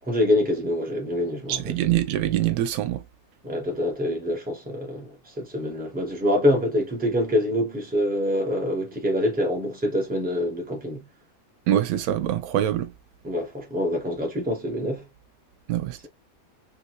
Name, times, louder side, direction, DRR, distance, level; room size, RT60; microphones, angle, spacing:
voice 1, 0.0-1.8 3.4-11.1 13.2-15.1, left 1 dB, 5° right, 0.8 m, -25 dB
voice 2, 1.5-3.0 11.7-12.9 15.7-16.1, right 12 dB, 90° right, 1.0 m, -24 dB
3.3 x 2.6 x 2.8 m
omnidirectional pair, 1.5 m